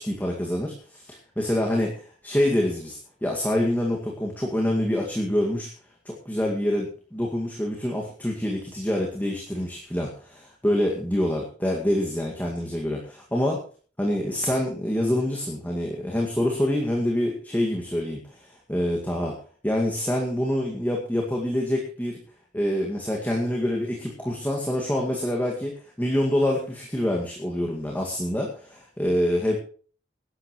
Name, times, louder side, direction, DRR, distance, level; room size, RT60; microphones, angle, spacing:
voice 1, 0.0-5.7 6.1-13.6 14.0-19.4 19.6-22.2 22.5-29.6, left 1 dB, 10° left, -1 dB, 2.1 m, -26 dB
20.0 x 11.5 x 3.1 m, 0.42 s
head